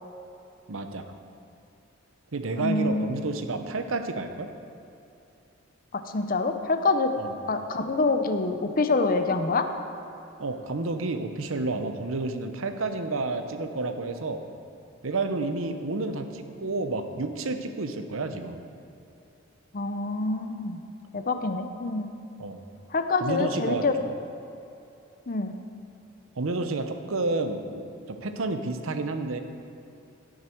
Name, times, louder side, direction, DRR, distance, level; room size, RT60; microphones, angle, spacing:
voice 1, 0.7-1.0 2.3-4.5 7.2-7.4 10.4-14.4 15.0-18.6 22.4-22.6 23.2-24.1 26.4-29.4, right 3 dB, 80° right, 7 dB, 0.8 m, -30 dB
voice 2, 2.6-3.0 5.9-7.1 7.5-9.7 19.7-20.8 21.1-22.1 22.9-23.9 25.3-25.5, left 3 dB, 45° left, 7 dB, 0.7 m, -26 dB
17.0 x 6.6 x 4.6 m, 2.8 s
head